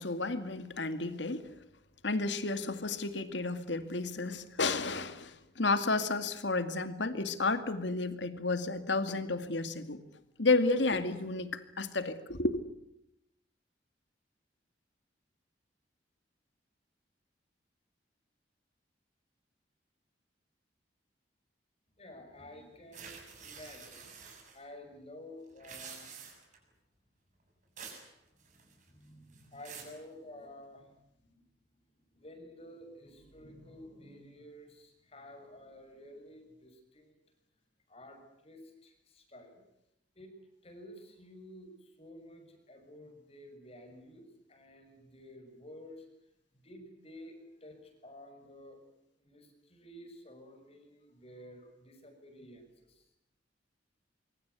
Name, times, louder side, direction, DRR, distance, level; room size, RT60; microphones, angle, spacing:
voice 1, 0.0-1.5 2.0-10.0 10.4-12.6, left 3 dB, 75° left, 10 dB, 2.2 m, -32 dB
voice 2, 22.0-24.3 24.5-26.1 28.5-30.9 31.2-31.4 32.1-37.1 37.9-39.6 40.2-40.4 40.6-46.1 46.5-48.8 49.2-53.2, left 1 dB, 35° left, 6 dB, 6.4 m, -52 dB
sound 1, 22.9-24.6 25.5-26.6 27.8-28.1 28.4-28.9 29.3-30.0, right 6 dB, 40° right, 7.1 m, -48 dB
25.0 x 25.0 x 8.3 m, 0.81 s
head